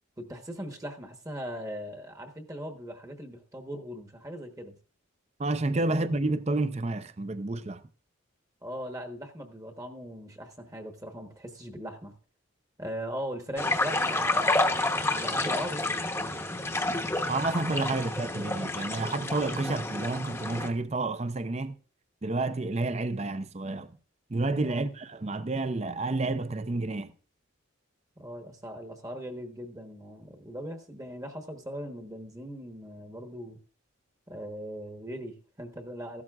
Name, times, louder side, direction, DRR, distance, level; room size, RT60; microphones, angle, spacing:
voice 1, 0.2-4.8 5.7-6.2 8.6-12.1 12.8-16.3 16.6-17.1 17.9-18.0 24.6-24.9 28.2-33.6 34.3-36.2, equal, 15° right, 1.1 m, -40 dB
voice 2, 5.4-7.8 17.3-21.7 22.2-24.0 24.3-27.1, right 2 dB, 30° right, 0.5 m, -30 dB
sound 1, 13.6-20.7, left 2 dB, 10° left, 0.9 m, -29 dB
15.0 x 12.5 x 2.4 m
head